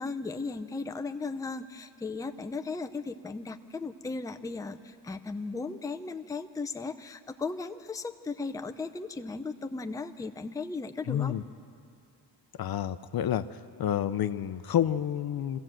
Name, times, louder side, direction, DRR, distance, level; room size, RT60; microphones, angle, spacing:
voice 1, 0.0-11.3, left 4 dB, 10° left, 7 dB, 0.5 m, -36 dB
voice 2, 11.1-11.4 12.6-15.6, left 10 dB, 60° left, 12 dB, 0.6 m, -29 dB
23.5 x 15.5 x 7.6 m, 2.4 s
cardioid pair, 125°, 42 cm